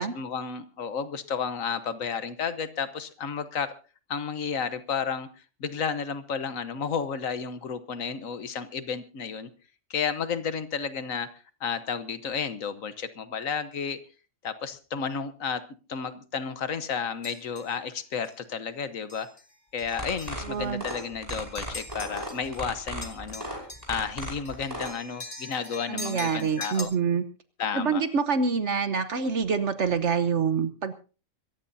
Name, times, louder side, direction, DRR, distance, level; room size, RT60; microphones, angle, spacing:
voice 1, 0.0-3.7 4.1-5.3 5.6-9.5 9.9-11.3 11.6-14.0 14.4-15.6 15.9-19.3 19.7-23.4 23.9-26.9 27.6-28.0, left 6 dB, 85° left, 12 dB, 1.5 m, -32 dB
sound 1, 17.2-17.7 18.2-18.4 19.1-19.4 19.8-22.6 22.9-26.8, left 2 dB, 40° left, 2.2 m, -42 dB
sound 2, 19.9-24.9, right 1 dB, 30° right, 5.5 m, -35 dB
voice 2, 20.4-20.8 25.9-27.2 27.7-30.9, right 5 dB, 65° right, 10 dB, 1.2 m, -26 dB
25.5 x 14.5 x 2.7 m, 0.35 s
omnidirectional pair, 1.3 m